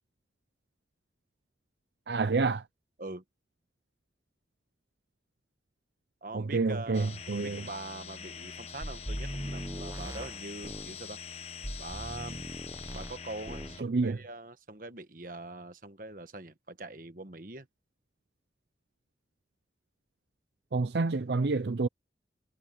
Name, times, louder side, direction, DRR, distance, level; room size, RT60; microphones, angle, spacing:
voice 1, 2.1-2.6 6.3-7.6 13.8-14.2 20.7-21.9, right 3 dB, 70° right, 0.6 m, -28 dB
voice 2, 6.2-11.2 11.8-12.5 12.9-17.7, right 2 dB, 50° right, 1.4 m, -43 dB
sound 1, 6.9-13.8, left 6 dB, 35° left, 1.1 m, -44 dB
sound 2, 8.8-11.0 11.6-13.2 13.5-13.8, right 1 dB, 20° right, 1.2 m, -39 dB
head